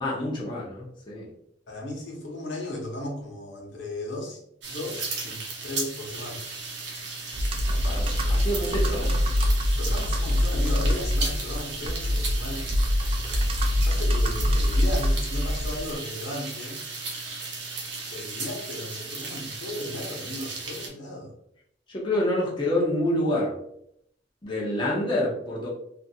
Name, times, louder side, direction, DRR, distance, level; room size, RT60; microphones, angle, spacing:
voice 1, 0.0-1.3 7.7-9.1 21.9-23.5 24.4-25.7, left 1 dB, 25° left, -5 dB, 0.7 m, -27 dB
voice 2, 1.7-4.4 4.7-6.4 8.9-9.2 9.8-12.7 13.8-16.8 18.1-21.3, left 1 dB, 75° left, -2 dB, 0.9 m, -36 dB
sound 1, 4.6-20.9, right 3 dB, 65° right, 0.7 m, -36 dB
Computer keyboard, 7.3-15.9, left 1 dB, 30° right, 0.3 m, -24 dB
2.7 x 2.5 x 2.7 m, 0.72 s
head